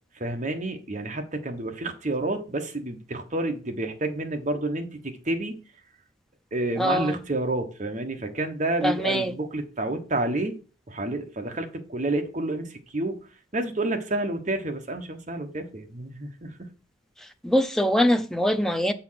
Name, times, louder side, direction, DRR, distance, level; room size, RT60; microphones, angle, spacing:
voice 1, 0.2-5.5 6.5-10.5 10.9-13.3 13.5-16.7, right 2 dB, 35° right, 1.1 m, -29 dB
voice 2, 6.8-7.2 8.8-9.3 17.2-18.9, equal, ahead, 0.5 m, -23 dB
7.3 x 4.3 x 5.7 m
head